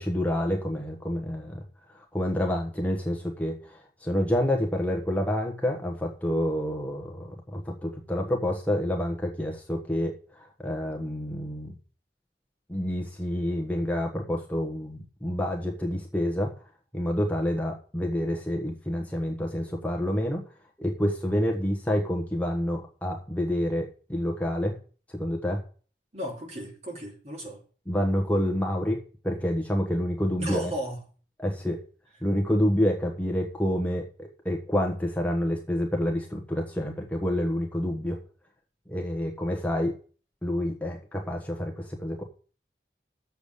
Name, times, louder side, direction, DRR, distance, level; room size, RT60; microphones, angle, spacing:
voice 1, 0.0-11.7 12.7-16.5 16.9-20.5 20.8-24.8 25.1-25.6 27.9-30.7 31.4-31.8 32.2-38.2 38.9-40.0 40.4-42.2, equal, 10° left, 1.1 m, -28 dB
voice 2, 26.1-27.6 30.4-31.1, right 1 dB, 40° right, 2.9 m, -35 dB
7.1 x 6.9 x 8.0 m
head